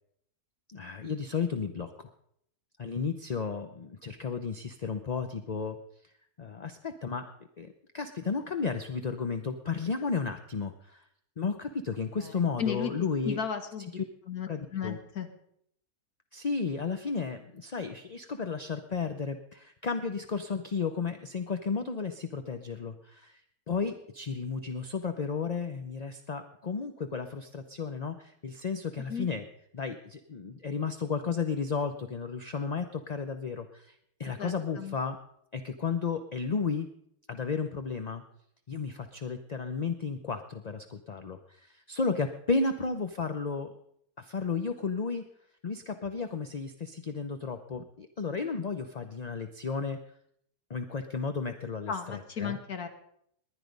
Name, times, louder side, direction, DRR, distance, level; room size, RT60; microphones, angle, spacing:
voice 1, 0.7-2.1 2.8-5.8 6.0-6.1 6.4-7.3 7.6-11.0 11.4-13.4 13.9-14.0 14.5-15.0 16.3-23.4 23.7-29.5 29.7-35.2 35.5-36.9 37.3-38.2 38.7-43.7 44.2-45.2 45.6-50.0 50.7-52.6, left 5 dB, 40° left, 8 dB, 0.6 m, -33 dB
voice 2, 12.2-12.9 13.3-14.0 14.3-15.3 29.1-29.3 34.4-35.0 51.9-52.9, left 7 dB, 70° left, 7 dB, 1.8 m, -35 dB
19.5 x 10.5 x 5.3 m, 0.71 s
omnidirectional pair, 1.6 m